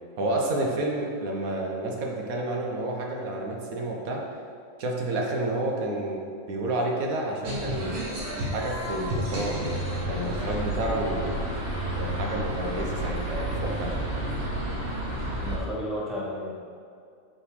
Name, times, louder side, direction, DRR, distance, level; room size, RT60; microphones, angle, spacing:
voice 1, 0.2-4.2 4.8-6.2 6.5-8.0 8.5-9.8 10.0-11.4 12.0-13.9, right 1 dB, 80° right, 0 dB, 1.4 m, -30 dB
sound 1, 7.4-15.6, right 1 dB, 60° right, 1.7 m, -30 dB
voice 2, 15.4-16.6, left 1 dB, ahead, -5 dB, 1.1 m, -33 dB
6.4 x 6.0 x 4.8 m, 2.3 s
omnidirectional pair, 1.5 m